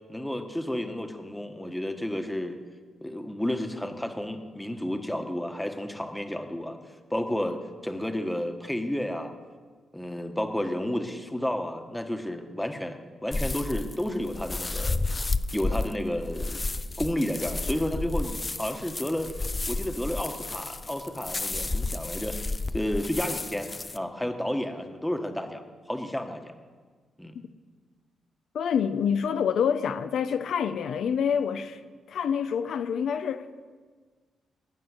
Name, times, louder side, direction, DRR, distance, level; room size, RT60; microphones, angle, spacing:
voice 1, 0.1-2.6 3.0-6.8 7.1-9.3 9.9-15.0 15.5-16.6 17.0-25.6 25.9-26.5 27.2-27.3, left 1 dB, 5° left, 1.3 m, -31 dB
sound 1, 13.3-24.0, left 2 dB, 25° left, 0.5 m, -32 dB
voice 2, 28.5-31.8 32.1-33.7, left 7 dB, 75° left, 0.6 m, -27 dB
17.5 x 6.2 x 9.8 m
cardioid pair, 100°, 0 cm